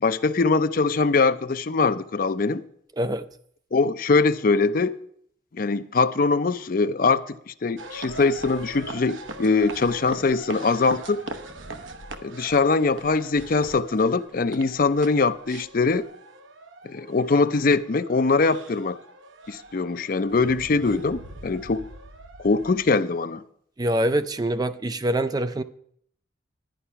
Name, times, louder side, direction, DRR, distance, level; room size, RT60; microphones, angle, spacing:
voice 1, 0.0-2.6 3.7-5.0 5.5-11.2 12.2-16.1 16.8-19.0 19.5-21.8 22.4-23.4, left 4 dB, 45° left, 0.5 m, -22 dB
sound 1, 7.8-22.9, right 2 dB, 80° right, 1.0 m, -41 dB
voice 2, 23.8-25.6, right 1 dB, 20° right, 0.4 m, -24 dB
11.5 x 10.0 x 5.7 m
head